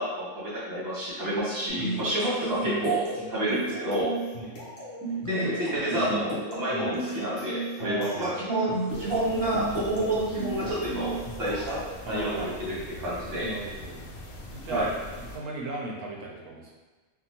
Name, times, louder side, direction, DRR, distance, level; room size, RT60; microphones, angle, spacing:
voice 1, 0.0-3.0 3.3-4.1 5.2-13.5 14.7-14.9, right 1 dB, 20° right, -7 dB, 0.8 m, -29 dB
sound 1, 1.7-11.9, right 2 dB, 65° left, 1.0 m, -35 dB
voice 2, 4.4-4.7 5.1-5.2 5.9-6.2 6.7-6.9 7.8-8.4 9.0-9.5 9.9-10.1 12.0-12.6 13.4-14.0 14.5-16.7, right 1 dB, 80° right, -1 dB, 0.9 m, -38 dB
sound 2, 8.9-15.4, left 1 dB, 85° left, 1.0 m, -42 dB
3.6 x 2.0 x 2.8 m, 1.3 s
omnidirectional pair, 1.3 m